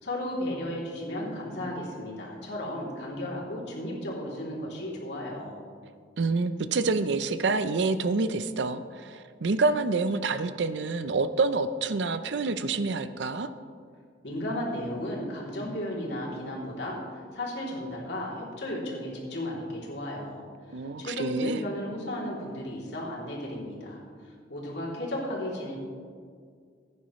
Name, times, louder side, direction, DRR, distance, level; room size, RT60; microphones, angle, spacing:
voice 1, 0.0-5.6 14.2-20.4 21.0-24.0 24.5-25.8, left 1 dB, 70° left, -4 dB, 3.0 m, -34 dB
voice 2, 6.2-13.5 20.7-21.6, right 3 dB, 80° right, 12 dB, 0.6 m, -27 dB
16.0 x 9.9 x 3.1 m, 2.1 s
head